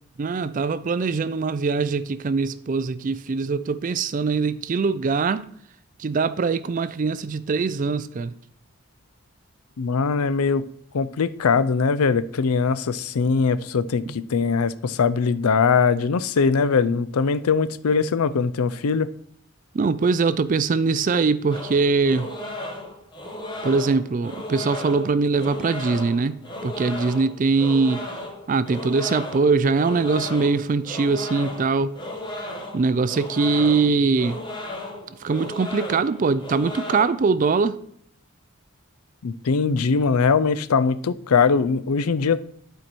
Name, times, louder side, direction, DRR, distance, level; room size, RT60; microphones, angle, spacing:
voice 1, 0.2-5.5 6.0-8.3 14.1-14.2 19.7-22.3 23.6-28.1 28.5-31.9 32.7-34.4 35.1-37.8, right 4 dB, 35° right, 0.3 m, -22 dB
voice 2, 9.8-10.7 10.9-19.1 39.2-42.4, left 5 dB, 80° left, 0.5 m, -21 dB
sound 1, 21.5-37.0, left 1 dB, 20° left, 1.2 m, -35 dB
11.5 x 4.5 x 4.5 m
head